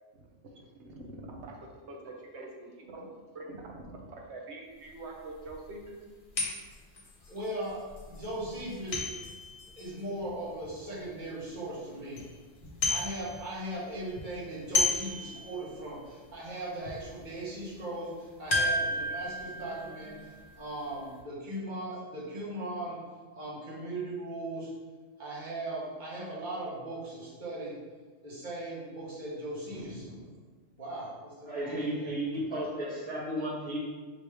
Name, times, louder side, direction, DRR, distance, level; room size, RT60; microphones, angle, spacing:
voice 1, 0.5-6.0 22.7-22.9 32.5-32.6, right 2 dB, 75° right, 0 dB, 1.0 m, -45 dB
sound 1, 4.9-5.0 5.5-5.6 6.4-11.0 11.5-11.6 11.9-12.3 12.6-13.7 13.9-15.9 16.3-16.4 16.8-17.1 18.5-20.9 21.2-21.3, left 2 dB, 60° left, 1.2 m, -33 dB
voice 2, 7.3-9.2 9.8-12.2 12.9-20.1 20.6-23.0 23.3-24.7 25.2-27.8 28.2-30.3 30.8-32.1, right 1 dB, 45° right, -7 dB, 1.4 m, -38 dB
voice 3, 31.5-33.8, right 1 dB, 5° left, -10 dB, 1.4 m, -33 dB
5.2 x 3.1 x 3.3 m, 1.4 s
omnidirectional pair, 1.2 m